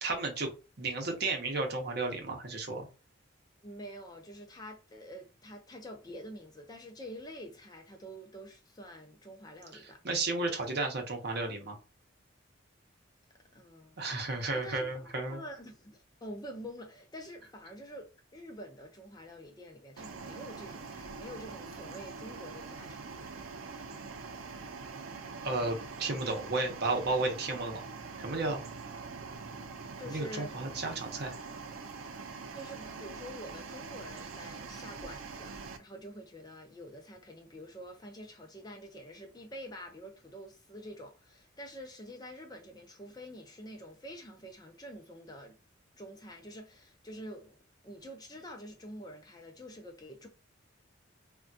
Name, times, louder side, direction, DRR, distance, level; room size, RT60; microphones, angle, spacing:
voice 1, 0.0-0.5 0.8-2.9 10.0-11.8 14.0-15.4 25.4-27.8 28.2-28.6 30.1-31.3, right 3 dB, 50° right, 0.7 m, -33 dB
voice 2, 3.6-10.0 13.5-23.3 30.0-30.6 32.5-45.6 46.0-47.6 47.8-50.3, equal, 20° left, 0.4 m, -47 dB
sound 1, 20.0-35.8, right 4 dB, 80° right, 0.4 m, -44 dB
3.3 x 2.2 x 2.6 m
head